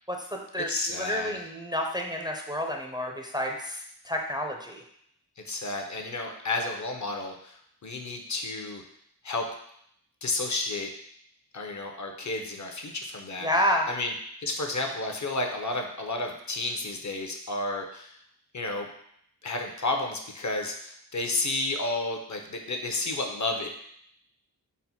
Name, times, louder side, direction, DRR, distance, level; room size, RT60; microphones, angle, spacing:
voice 1, 0.1-4.8 13.4-13.9, equal, 10° right, 1 dB, 0.5 m, -30 dB
voice 2, 0.7-1.4 5.4-8.8 9.2-9.5 10.2-10.9 11.5-13.5 13.9-14.1 14.4-18.2 18.5-18.9 19.4-23.7, left 2 dB, 45° left, 3 dB, 0.6 m, -31 dB
4.1 x 2.1 x 4.1 m, 0.70 s
cardioid pair, 45°, 40 cm